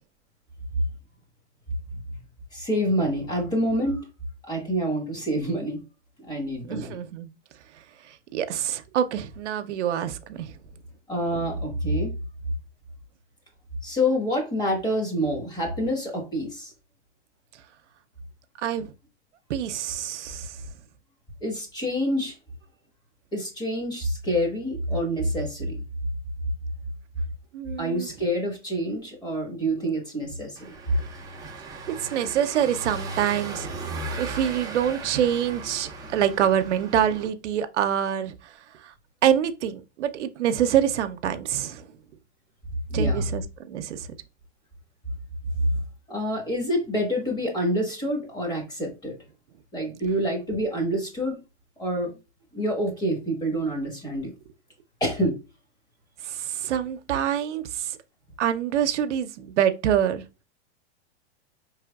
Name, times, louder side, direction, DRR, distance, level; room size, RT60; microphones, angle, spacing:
voice 1, 2.5-4.0 4.5-5.8 6.2-7.0 11.1-12.1 13.8-16.7 21.4-22.3 23.3-25.8 27.8-30.7 42.9-43.3 46.1-49.1 49.7-51.4 51.8-52.1 52.5-54.3 55.0-55.3, equal, 10° left, 1.2 m, -27 dB
voice 2, 6.7-7.3 8.1-10.5 18.6-18.9 19.5-20.6 27.5-28.1 31.9-33.7 34.2-38.5 38.8-38.9 39.2-41.9 42.9-44.1 56.2-58.0 58.4-60.2, right 10 dB, 85° right, 0.6 m, -26 dB
Car passing by / Engine, 30.6-37.3, right 3 dB, 10° right, 0.5 m, -37 dB
4.8 x 3.2 x 2.3 m
hypercardioid pair, 140°, 34 cm